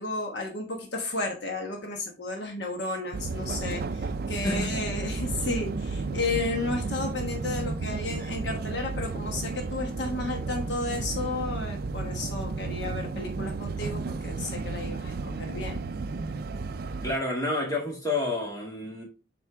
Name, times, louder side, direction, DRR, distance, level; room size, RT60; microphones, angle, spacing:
voice 1, 0.0-15.8, left 2 dB, 60° left, 1.1 m, -33 dB
sound 1, 3.1-17.2, right 3 dB, 50° right, 0.4 m, -33 dB
voice 2, 17.0-19.0, left 2 dB, 20° left, 2.0 m, -29 dB
7.6 x 4.4 x 3.4 m
head